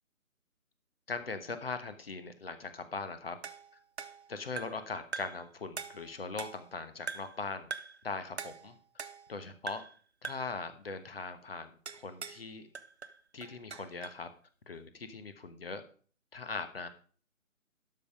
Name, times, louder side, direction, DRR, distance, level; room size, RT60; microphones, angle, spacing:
voice 1, 1.1-3.4 4.3-7.7 8.0-8.7 9.3-9.8 10.2-12.7 13.3-14.3 14.7-15.8 16.3-16.9, left 4 dB, 45° left, 10 dB, 1.2 m, -40 dB
sound 1, 3.4-4.9 5.1-5.5 5.8-6.7 7.1-7.4 7.7-8.0 8.4-9.4 9.7-10.0 10.2-10.6 11.9-12.5 12.7-14.2, right 5 dB, 50° right, 0.7 m, -43 dB
12.0 x 5.8 x 5.0 m, 0.42 s
figure-of-eight pair, 150°, 41 cm